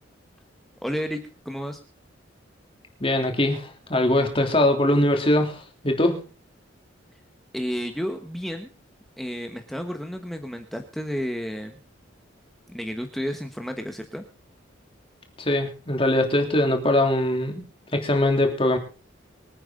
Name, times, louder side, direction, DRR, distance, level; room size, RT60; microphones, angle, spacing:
voice 1, 0.8-1.8 7.5-8.7 9.2-11.8 12.7-14.2, equal, ahead, 5 dB, 1.3 m, -31 dB
voice 2, 3.0-6.2 15.4-17.6 17.9-18.8, left 1 dB, 30° left, 4 dB, 3.1 m, -22 dB
24.5 x 9.1 x 3.8 m, 0.37 s
head